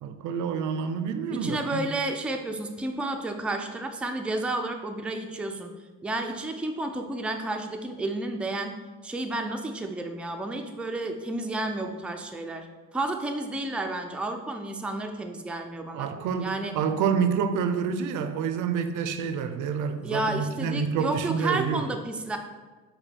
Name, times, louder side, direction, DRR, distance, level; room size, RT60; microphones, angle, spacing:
voice 1, 0.0-1.9 15.9-21.9, right 6 dB, 80° right, 9 dB, 0.5 m, -28 dB
voice 2, 1.3-5.7 6.0-8.7 9.0-12.7 12.9-16.1 16.4-16.7 20.0-22.4, right 2 dB, 5° right, 4 dB, 0.3 m, -31 dB
4.9 x 2.2 x 4.4 m, 1.3 s
cardioid pair, 90°, 30 cm